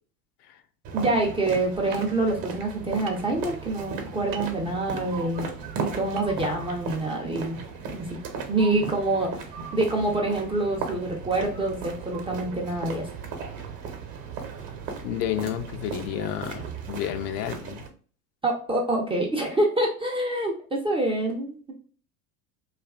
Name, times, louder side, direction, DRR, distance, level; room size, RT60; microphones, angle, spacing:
sound 1, 0.8-17.9, right 5 dB, 45° right, 0.8 m, -36 dB
voice 1, 0.9-5.5 5.8-7.6 7.9-8.1 8.5-13.1 18.4-21.7, right 2 dB, 15° right, -1 dB, 0.4 m, -26 dB
sound 2, 1.9-2.0 3.1-3.3 4.3-4.5 6.2-6.3 6.6-6.7, right 6 dB, 90° right, 0.6 m, -38 dB
voice 2, 15.0-17.8, left 10 dB, 70° left, 9 dB, 0.5 m, -31 dB
2.6 x 2.4 x 2.3 m, 0.42 s
hypercardioid pair, 90°, 48 cm